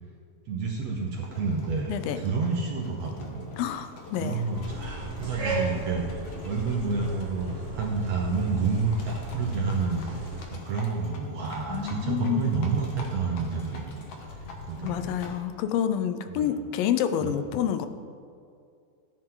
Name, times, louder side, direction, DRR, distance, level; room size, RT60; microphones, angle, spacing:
voice 1, 0.5-3.4 4.2-10.2 10.5-14.1 14.7-15.1 16.3-16.5 17.2-17.4, right 4 dB, 65° right, -1 dB, 1.7 m, -29 dB
Livestock farm animals working animals, 1.1-15.5, left 2 dB, 55° left, 1.9 m, -44 dB
voice 2, 1.9-2.2 3.6-4.4 11.7-12.5 14.8-17.9, left 9 dB, 85° left, 10 dB, 2.4 m, -28 dB
sound 1, 4.5-10.5, right 3 dB, 45° right, 2.7 m, -35 dB
14.5 x 9.0 x 3.8 m, 2.4 s
omnidirectional pair, 4.0 m